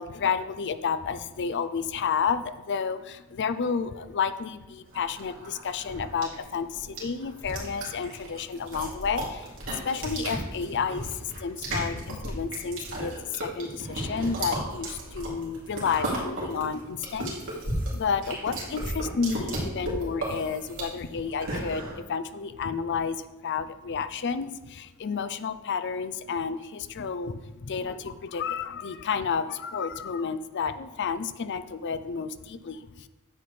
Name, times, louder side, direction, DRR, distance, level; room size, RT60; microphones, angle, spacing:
voice 1, 0.0-17.6 17.9-33.1, left 6 dB, 55° left, 12 dB, 0.5 m, -31 dB
sound 1, 4.9-21.9, right 1 dB, 65° right, 2.9 m, -34 dB
9.6 x 7.9 x 3.3 m, 1.1 s
head